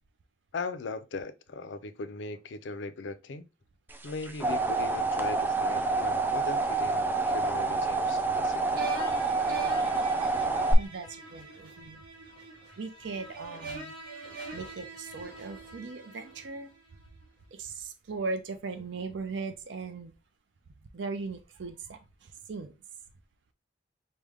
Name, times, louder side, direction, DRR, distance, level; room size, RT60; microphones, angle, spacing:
voice 1, 0.5-3.4 4.0-8.6, left 3 dB, 80° left, 0.5 m, -39 dB
sound 1, 4.0-10.7, right 3 dB, 10° right, 0.4 m, -28 dB
sound 2, 8.7-16.9, right 3 dB, 55° right, 1.7 m, -43 dB
voice 2, 10.8-12.0 12.8-13.9 14.5-16.7 17.5-20.1 20.9-22.0 22.5-22.7, right 4 dB, 75° right, 0.5 m, -38 dB
4.8 x 2.1 x 3.4 m
head